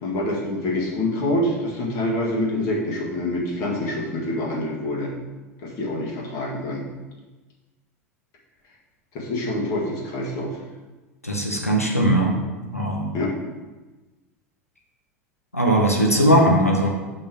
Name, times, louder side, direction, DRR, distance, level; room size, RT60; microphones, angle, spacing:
voice 1, 0.0-5.1 5.6-6.9 9.1-10.5 13.1-13.3, left 1 dB, 45° left, -2 dB, 1.7 m, -26 dB
voice 2, 11.2-12.3 12.6-13.1 15.5-16.9, right 1 dB, 90° left, -1 dB, 1.1 m, -19 dB
5.4 x 5.2 x 5.8 m, 1.2 s
figure-of-eight pair, 80°, 8 cm